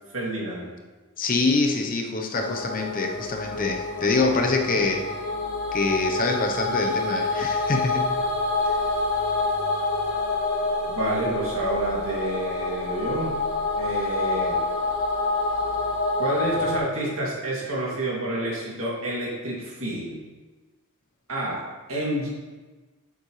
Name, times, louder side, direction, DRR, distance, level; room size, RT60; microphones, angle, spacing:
voice 1, 0.1-0.7 10.9-13.3 13.8-14.6 16.2-20.2 21.3-21.6 21.9-22.3, right 1 dB, 65° right, -5 dB, 2.5 m, -29 dB
voice 2, 1.2-5.1 5.7-8.1 8.7-8.8, left 3 dB, 40° left, 2 dB, 0.8 m, -25 dB
sound 1, 2.3-16.8, left 3 dB, 65° left, 2.4 m, -27 dB
8.7 x 7.1 x 3.2 m, 1.3 s
head